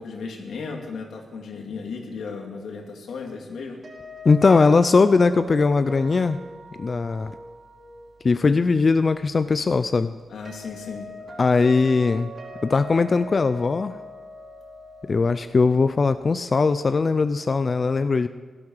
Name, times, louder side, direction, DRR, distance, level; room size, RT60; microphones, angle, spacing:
voice 1, 0.0-3.8 10.3-11.1, left 4 dB, 90° left, 2 dB, 2.5 m, -35 dB
sound 1, 3.8-16.7, equal, 50° right, 4.2 m, -41 dB
voice 2, 4.2-6.4 6.8-7.3 8.2-10.1 11.4-12.3 12.6-14.0 15.1-18.3, left 4 dB, 35° left, 12 dB, 0.4 m, -20 dB
16.5 x 12.0 x 6.5 m, 1.5 s
wide cardioid pair, 135°, 0 cm